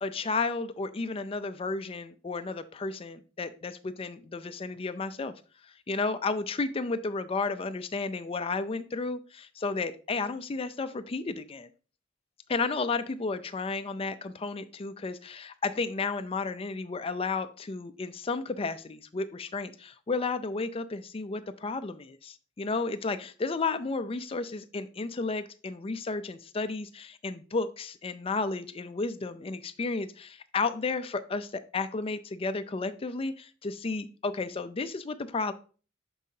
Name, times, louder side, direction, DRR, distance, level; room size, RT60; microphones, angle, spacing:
voice 1, 0.0-5.3 5.6-11.7 12.5-35.5, left 3 dB, 30° left, 11 dB, 0.4 m, -32 dB
6.2 x 5.4 x 2.8 m, 0.38 s
head